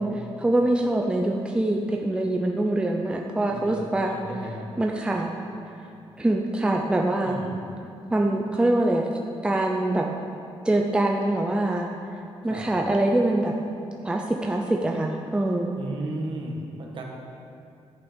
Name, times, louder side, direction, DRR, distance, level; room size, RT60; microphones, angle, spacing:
voice 1, 0.4-4.2 4.8-5.3 6.2-7.4 8.1-9.1 9.4-10.1 10.6-11.9 12.4-13.6 14.0-15.8, right 1 dB, 10° right, 1 dB, 0.6 m, -24 dB
voice 2, 3.5-4.7 7.2-7.6 12.4-12.7 15.8-17.0, right 1 dB, 50° right, -1 dB, 1.8 m, -35 dB
11.0 x 8.9 x 5.2 m, 2.6 s
wide cardioid pair, 155°, 11 cm